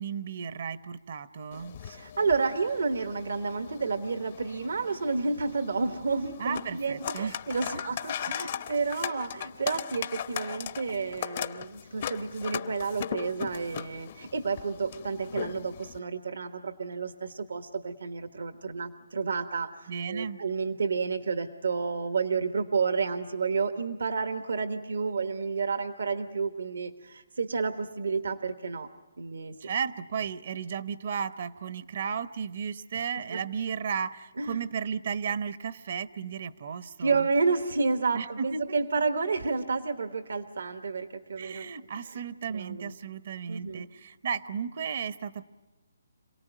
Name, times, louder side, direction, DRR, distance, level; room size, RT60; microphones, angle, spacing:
voice 1, 0.0-1.8 6.4-7.3 7.7-7.8 8.3-8.5 19.9-20.4 29.6-37.3 38.1-38.6 41.4-45.4, right 6 dB, 50° right, 14 dB, 0.8 m, -34 dB
sound 1, 1.5-16.0, left 9 dB, 45° left, 0.7 m, -39 dB
voice 2, 1.8-28.9 29.2-29.6 33.3-33.4 34.4-34.6 37.0-41.7 42.0-42.2 42.5-42.9 43.5-43.9, right 4 dB, 80° right, 8 dB, 1.3 m, -30 dB
27.0 x 18.0 x 9.1 m, 1.2 s
hypercardioid pair, 160°, 0 cm